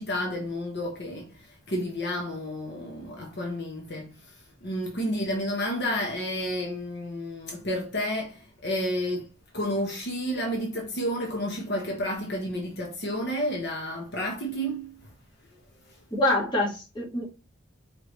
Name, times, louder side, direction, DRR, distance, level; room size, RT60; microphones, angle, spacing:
voice 1, 0.0-4.4 4.6-9.3 9.5-15.0 15.9-16.0, equal, 55° left, 1.2 m, -31 dB
voice 2, 16.1-17.3, left 1 dB, 25° left, 1.9 m, -25 dB
4.8 x 3.5 x 3.1 m
head